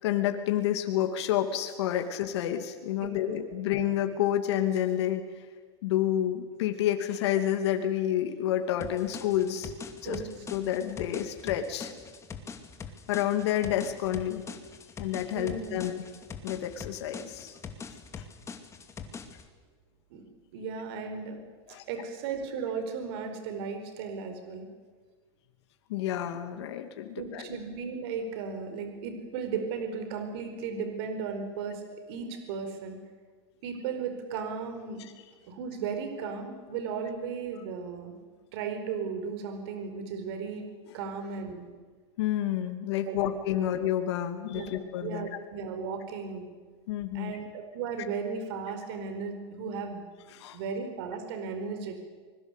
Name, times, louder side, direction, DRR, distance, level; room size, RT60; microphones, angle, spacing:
voice 1, 0.0-5.5 5.8-9.7 10.0-10.2 10.5-11.9 13.1-14.4 15.0-16.1 16.4-17.6 18.2-18.3 21.7-21.8 25.9-27.5 35.0-35.1 42.2-45.3 46.9-47.4 50.3-50.6, left 11 dB, 70° left, 6 dB, 2.6 m, -29 dB
voice 2, 3.0-3.4 10.0-10.3 15.3-15.8 20.1-20.2 20.5-21.4 21.7-24.7 27.2-31.8 32.1-33.0 33.6-35.0 35.5-38.2 38.5-40.7 40.9-41.7 43.0-43.2 43.6-43.7 44.5-46.5 47.1-50.0 50.5-52.0, right 5 dB, 65° right, 7 dB, 4.7 m, -35 dB
sound 1, 8.8-19.5, left 6 dB, 20° left, 2.5 m, -43 dB
25.0 x 21.5 x 8.3 m, 1.5 s
supercardioid pair, 135°, 14 cm